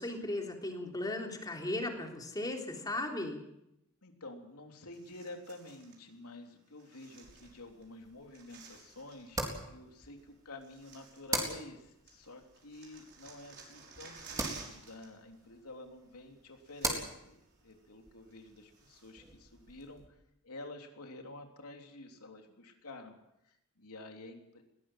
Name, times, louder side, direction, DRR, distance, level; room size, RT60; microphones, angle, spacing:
voice 1, 0.0-3.4, left 1 dB, 20° left, 2 dB, 3.5 m, -36 dB
voice 2, 4.0-20.2 20.4-23.2 23.5-24.6, left 2 dB, 90° left, 3 dB, 3.4 m, -49 dB
sound 1, 4.9-6.0 6.8-9.4 10.2-10.3 10.6-11.8 12.1-15.1 15.3-15.6 16.3-16.4 16.6-17.4 17.7-17.8 18.3-19.3 19.8-19.9, right 5 dB, 50° right, 6.0 m, -53 dB
sound 2, 7.2-20.1, right 2 dB, 15° right, 4.0 m, -43 dB
21.0 x 18.0 x 7.6 m, 0.82 s
head